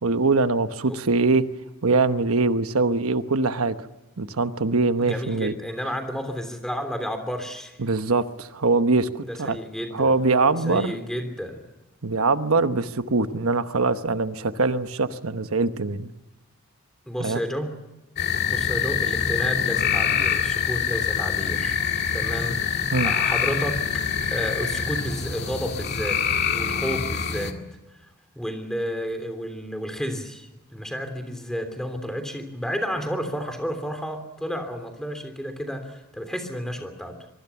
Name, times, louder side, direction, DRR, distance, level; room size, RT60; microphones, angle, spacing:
voice 1, 0.0-1.4 1.8-3.7 4.2-5.5 7.8-9.6 9.9-10.9 12.0-16.1 17.2-17.4 22.9-23.1, right 3 dB, 85° right, 10 dB, 1.0 m, -23 dB
voice 2, 5.0-7.8 9.2-10.1 10.7-11.6 17.1-17.8 18.5-21.8 22.1-26.2 26.5-27.5 28.3-37.2, equal, 5° left, 7 dB, 3.2 m, -31 dB
sound 1, 18.2-27.5, left 7 dB, 50° left, 2.0 m, -25 dB
24.5 x 23.0 x 7.1 m, 1.0 s
head